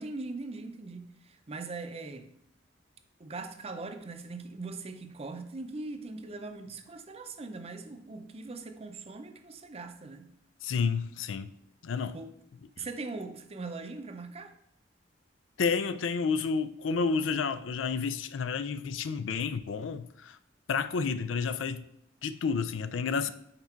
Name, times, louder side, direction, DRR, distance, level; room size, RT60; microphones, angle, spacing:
voice 1, 0.0-2.3 3.2-10.3 12.1-12.3 12.8-14.6, right 3 dB, 35° right, 0.6 m, -41 dB
voice 2, 10.6-11.5 11.8-12.2 12.8-12.9 15.6-20.4 20.7-21.8 22.2-23.3, left 5 dB, 80° left, 0.4 m, -30 dB
5.9 x 4.5 x 4.4 m
head